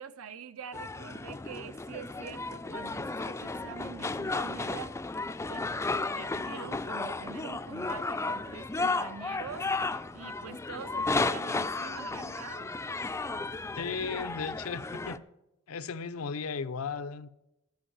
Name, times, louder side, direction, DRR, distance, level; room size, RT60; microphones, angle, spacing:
voice 1, 0.0-5.0 5.5-5.7 6.1-9.7 10.1-12.7, right 6 dB, 80° right, 0.7 m, -45 dB
sound 1, 0.7-15.2, left 3 dB, 15° left, 0.3 m, -34 dB
voice 2, 13.7-15.2 15.7-17.3, left 5 dB, 80° left, 0.6 m, -35 dB
13.0 x 5.4 x 8.7 m
head